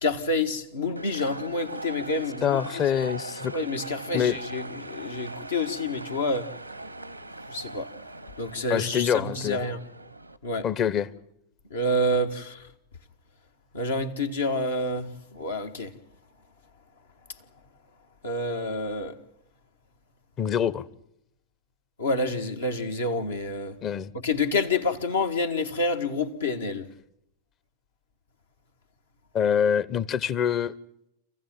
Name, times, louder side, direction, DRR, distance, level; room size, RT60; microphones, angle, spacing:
voice 1, 0.0-2.8 3.5-6.5 7.5-8.0 8.4-9.8 10.4-10.7 11.7-12.7 13.7-15.9 18.2-19.2 22.0-23.8 24.1-26.9, left 2 dB, 70° left, 1.6 m, -28 dB
sound 1, 1.0-10.4, right 2 dB, 90° right, 1.0 m, -40 dB
voice 2, 2.4-3.5 4.1-4.4 8.7-9.6 10.6-11.1 20.4-20.8 23.8-24.1 29.3-30.7, left 8 dB, 30° left, 0.9 m, -25 dB
27.5 x 15.5 x 9.0 m
figure-of-eight pair, 90°, 0 cm